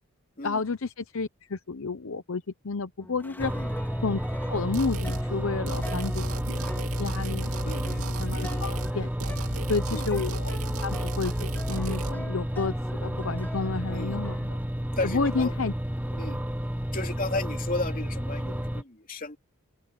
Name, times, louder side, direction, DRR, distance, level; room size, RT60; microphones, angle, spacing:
voice 1, 0.4-3.5 4.0-4.2 4.5-9.1 9.7-14.6 15.0-15.7, left 4 dB, 65° left, 0.8 m, -31 dB
sound 1, 3.0-14.5, left 1 dB, 10° left, 3.7 m, -44 dB
sound 2, 3.4-18.8, equal, 5° right, 1.2 m, -31 dB
sound 3, 4.7-5.3 5.7-8.9 9.2-12.1, right 1 dB, 75° right, 2.7 m, -34 dB
voice 2, 7.6-8.1 8.3-8.7 9.9-10.1 13.9-14.1 15.0-15.5 16.2-16.4 16.9-19.4, left 2 dB, 40° left, 3.1 m, -34 dB
open air
head